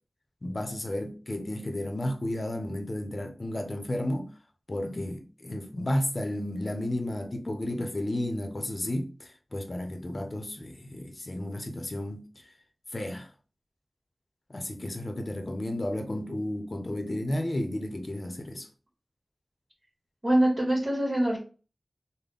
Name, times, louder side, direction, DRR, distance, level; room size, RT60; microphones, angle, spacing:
voice 1, 0.4-4.3 4.7-12.3 12.9-13.3 14.5-18.7, left 1 dB, 60° left, 0.7 m, -32 dB
voice 2, 20.2-21.4, right 1 dB, 40° right, 1.3 m, -24 dB
3.5 x 2.2 x 3.8 m
wide cardioid pair, 45°, 0 cm